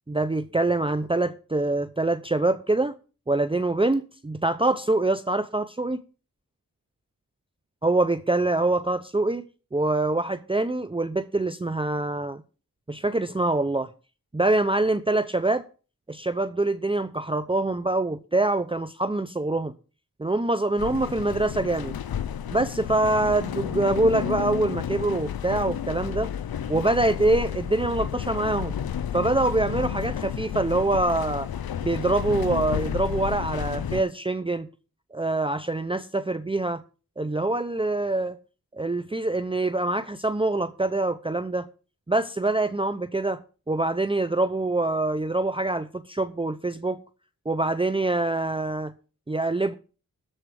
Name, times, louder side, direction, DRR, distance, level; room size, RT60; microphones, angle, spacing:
voice 1, 0.1-2.9 3.3-6.0 7.8-9.4 9.7-12.4 12.9-13.9 14.3-15.6 16.1-19.7 20.2-21.9 22.5-26.3 26.7-28.8 29.1-31.5 31.8-34.7 35.1-36.8 37.2-38.4 38.8-41.7 42.1-43.4 43.7-47.0 47.5-48.9 49.3-49.7, right 2 dB, 15° right, 0.7 m, -25 dB
sound 1, 20.8-34.0, left 9 dB, 80° left, 0.6 m, -31 dB
13.0 x 4.5 x 7.6 m
cardioid pair, 55°, 35 cm